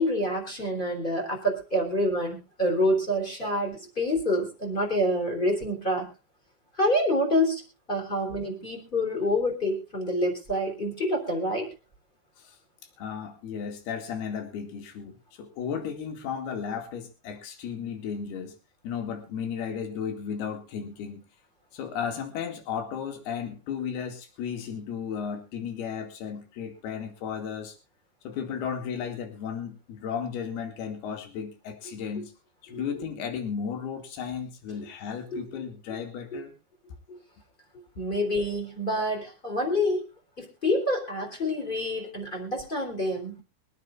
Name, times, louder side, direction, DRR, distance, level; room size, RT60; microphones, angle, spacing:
voice 1, 0.0-6.1 6.8-7.6 7.9-11.7 35.3-35.4 36.3-36.4 37.1-37.2 38.0-40.0 40.4-43.3, left 1 dB, 10° left, 2 dB, 3.6 m, -27 dB
voice 2, 13.0-18.6 18.8-21.2 21.7-27.8 28.2-32.3 32.6-36.5, left 7 dB, 60° left, 5 dB, 4.1 m, -34 dB
24.5 x 9.5 x 2.6 m, 0.30 s
omnidirectional pair, 5.3 m